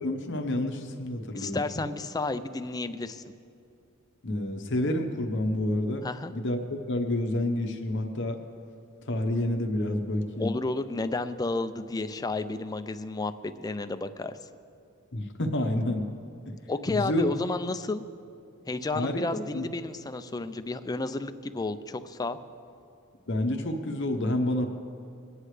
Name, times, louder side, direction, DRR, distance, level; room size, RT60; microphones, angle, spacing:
voice 1, 0.0-1.8 4.2-6.1 6.3-8.4 9.0-10.5 15.1-16.1 16.9-17.3 18.9-19.7 23.3-24.7, left 1 dB, 55° left, 4 dB, 1.0 m, -29 dB
voice 2, 1.4-3.2 6.0-6.3 10.4-14.4 16.7-18.0 18.7-22.4, left 3 dB, 15° left, 10 dB, 0.4 m, -31 dB
22.0 x 9.7 x 3.3 m, 2.5 s
head